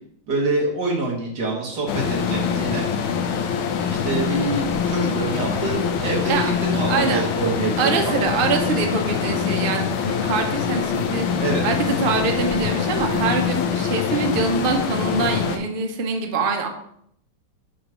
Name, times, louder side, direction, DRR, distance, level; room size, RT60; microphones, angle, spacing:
voice 1, 0.3-2.8 3.9-8.2 8.6-8.8 11.4-11.6, right 2 dB, 50° right, -2 dB, 2.2 m, -26 dB
sound 1, 1.9-15.6, left 7 dB, 75° left, 1.5 m, -24 dB
voice 2, 6.9-7.2 7.8-16.7, right 4 dB, 90° right, 3 dB, 0.4 m, -24 dB
7.3 x 3.2 x 6.1 m, 0.70 s
omnidirectional pair, 2.4 m